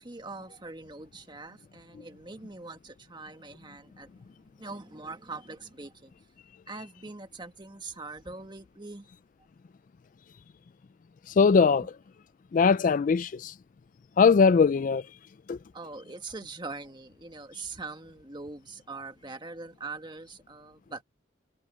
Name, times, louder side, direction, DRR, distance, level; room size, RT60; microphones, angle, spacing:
voice 1, 0.0-4.3 4.6-6.1 6.7-9.1 15.7-21.0, right 3 dB, 25° right, 1.6 m, -42 dB
voice 2, 11.3-11.9 12.5-13.5 14.2-15.0 15.5-15.6, left 5 dB, 45° left, 0.3 m, -21 dB
head